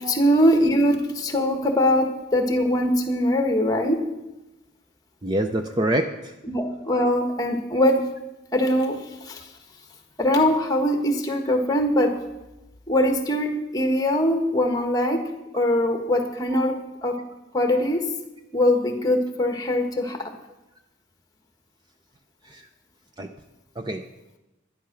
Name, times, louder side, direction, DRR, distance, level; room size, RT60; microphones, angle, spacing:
voice 1, 0.0-4.0 6.5-8.0 8.5-9.4 10.2-12.1 12.9-15.2 15.5-17.2 17.5-18.1 18.5-20.3, left 1 dB, 20° left, 5 dB, 1.4 m, -22 dB
voice 2, 5.2-6.3 16.5-16.6 22.4-22.7 23.2-23.3 23.8-24.1, right 1 dB, 20° right, 6 dB, 0.5 m, -26 dB
12.0 x 11.0 x 6.0 m, 0.97 s
head